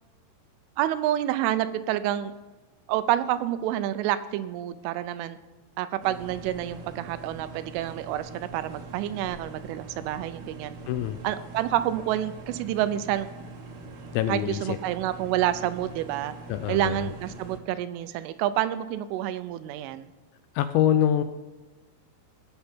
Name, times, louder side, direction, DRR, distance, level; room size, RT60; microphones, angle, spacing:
voice 1, 0.8-2.3 2.9-5.4 5.8-10.7 11.2-13.3 14.3-16.3 16.7-20.1, right 13 dB, 85° right, 12 dB, 3.2 m, -28 dB
sound 1, 6.0-17.6, right 3 dB, 60° right, 1.9 m, -43 dB
voice 2, 10.9-11.2 14.1-14.8 16.5-17.1 20.5-21.2, left 10 dB, 80° left, 10 dB, 2.7 m, -25 dB
18.0 x 6.9 x 4.5 m, 1.2 s
omnidirectional pair, 5.6 m